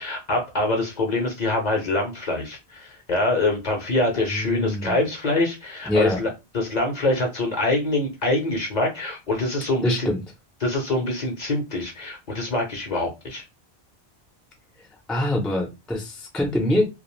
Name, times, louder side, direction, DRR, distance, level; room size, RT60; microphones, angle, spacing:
voice 1, 0.0-10.1 10.6-13.4, left 2 dB, 50° left, 0.7 m, -25 dB
voice 2, 4.3-5.0 5.9-6.2 9.8-10.2 15.1-16.8, left 1 dB, ahead, 0.4 m, -24 dB
2.4 x 2.2 x 3.0 m
omnidirectional pair, 1.1 m